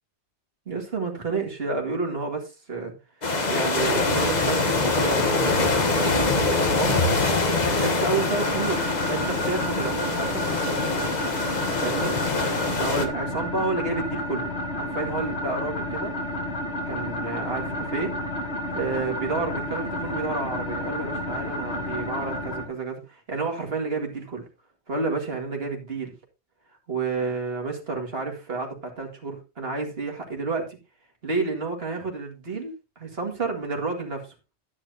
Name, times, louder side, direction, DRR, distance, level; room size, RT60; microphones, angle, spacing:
voice 1, 0.7-2.9 3.5-7.0 7.8-11.0 11.8-12.1 12.8-14.5 14.7-16.1 16.9-18.1 18.7-24.4 24.9-26.1 26.9-30.8 31.2-34.3, right 3 dB, 60° right, 2 dB, 2.3 m, -30 dB
sound 1, 3.2-13.1, left 3 dB, 40° left, 1.2 m, -24 dB
sound 2, 8.1-22.7, left 1 dB, 85° left, 2.0 m, -31 dB
11.0 x 9.7 x 2.7 m, 0.28 s
omnidirectional pair, 1.1 m